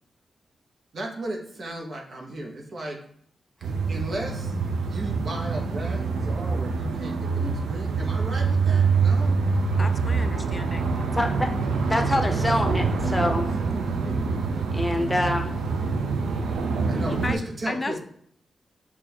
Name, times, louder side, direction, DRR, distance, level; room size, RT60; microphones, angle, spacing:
voice 1, 0.9-3.0 3.6-4.5 4.9-9.4 12.3-12.7 13.0-14.4 16.9-18.0, right 1 dB, 60° right, 1 dB, 0.8 m, -35 dB
sound 1, 3.6-17.3, right 4 dB, 85° right, 0.4 m, -25 dB
voice 2, 9.8-11.0 17.1-18.0, left 2 dB, 30° left, 9 dB, 0.3 m, -33 dB
voice 3, 11.2-11.5 11.9-13.5 14.7-15.5, left 1 dB, 15° left, 4 dB, 0.7 m, -25 dB
6.0 x 2.3 x 2.8 m, 0.65 s
cardioid pair, 50°, 0 cm